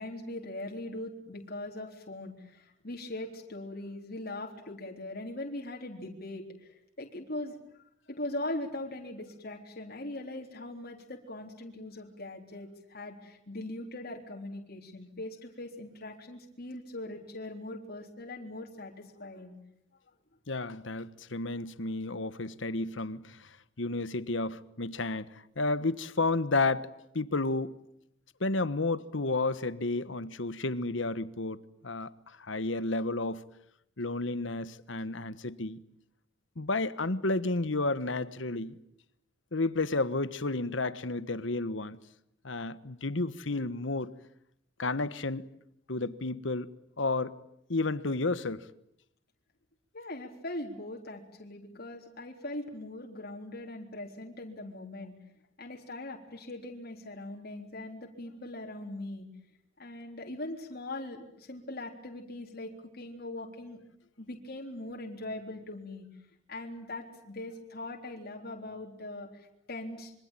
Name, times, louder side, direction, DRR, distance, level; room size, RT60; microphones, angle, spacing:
voice 1, 0.0-19.6 49.9-55.1 55.6-59.3 59.8-63.8 64.2-66.1 66.5-70.1, left 1 dB, 50° left, 3.8 m, -41 dB
voice 2, 20.5-27.8 28.4-33.4 34.0-35.8 36.6-38.8 39.5-42.0 42.4-44.1 44.8-45.5 45.9-47.4 47.7-48.7, left 2 dB, 70° left, 1.3 m, -32 dB
26.5 x 24.5 x 9.0 m
head